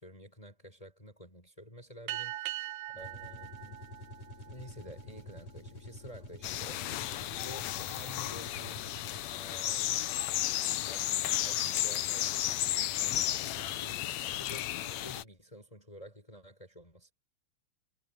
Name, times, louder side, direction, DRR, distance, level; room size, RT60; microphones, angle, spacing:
voice 1, 0.0-3.8 4.5-7.1 7.4-9.0 9.3-10.1 10.8-17.1, equal, 10° left, 7.3 m, -51 dB
sound 1, 2.1-5.0, right 15 dB, 70° right, 2.3 m, -41 dB
sound 2, 2.9-9.5, left 1 dB, 50° left, 6.1 m, -48 dB
sound 3, 6.4-15.2, left 13 dB, 70° left, 1.7 m, -33 dB
omnidirectional pair, 3.8 m